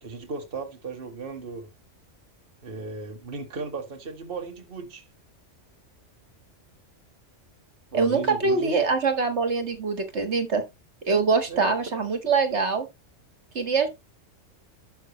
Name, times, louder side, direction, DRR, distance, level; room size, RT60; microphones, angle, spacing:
voice 1, 0.0-1.7 2.6-5.0 7.9-8.8 11.5-11.7, right 4 dB, 50° right, 1.6 m, -36 dB
voice 2, 7.9-10.6 11.0-12.9 13.5-13.9, right 4 dB, 65° right, 1.9 m, -24 dB
12.0 x 6.0 x 3.1 m
omnidirectional pair, 1.3 m